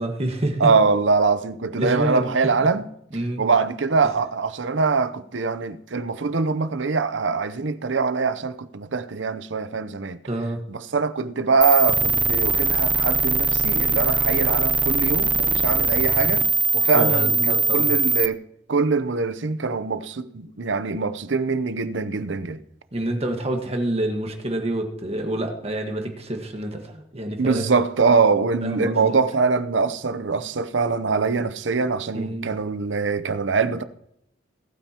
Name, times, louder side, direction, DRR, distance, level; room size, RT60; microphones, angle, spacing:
voice 1, 0.0-0.7 1.8-2.3 3.1-3.4 10.3-10.6 16.9-17.9 22.9-27.6 28.6-29.2 32.1-32.5, right 1 dB, 35° right, 1.6 m, -27 dB
voice 2, 0.6-2.9 3.4-10.2 10.7-16.5 16.7-22.6 27.4-33.8, right 4 dB, 85° right, 0.7 m, -23 dB
sound 1, 11.6-18.3, right 3 dB, 10° right, 0.5 m, -21 dB
20.0 x 9.0 x 3.0 m
head